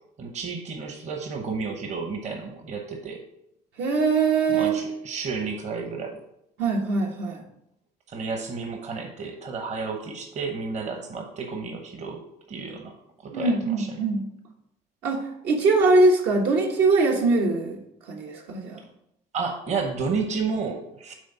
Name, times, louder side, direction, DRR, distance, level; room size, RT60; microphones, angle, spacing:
voice 1, 0.2-3.2 4.5-6.2 8.1-12.2 12.5-12.9 13.2-13.9 19.3-21.1, right 4 dB, 45° right, 4 dB, 0.9 m, -31 dB
voice 2, 3.8-4.8 6.6-7.4 13.3-14.3 15.0-17.8 18.1-18.8, right 3 dB, 80° right, 1 dB, 1.3 m, -22 dB
6.4 x 3.7 x 5.6 m, 0.78 s
cardioid pair, 110°, 17 cm